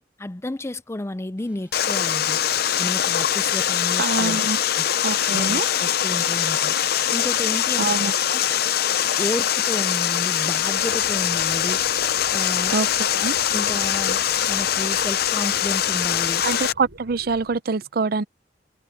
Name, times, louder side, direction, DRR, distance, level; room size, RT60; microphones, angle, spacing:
voice 1, 0.0-2.4 2.8-4.9 5.3-6.7 7.1-8.0 8.3-8.4 9.2-11.8 12.3-12.8 13.5-14.2 14.5-16.4, left 1 dB, 15° left, 0.5 m, -32 dB
sound 1, 1.4-5.1 5.7-15.4, right 1 dB, 10° right, 4.3 m, -58 dB
Water, 1.7-16.7, left 10 dB, 60° left, 0.6 m, -22 dB
voice 2, 4.0-4.6 5.0-5.7 7.8-8.1 12.7-13.4 16.4-18.2, right 4 dB, 60° right, 0.6 m, -25 dB
sound 2, 10.3-17.6, right 1 dB, 90° right, 5.5 m, -47 dB
head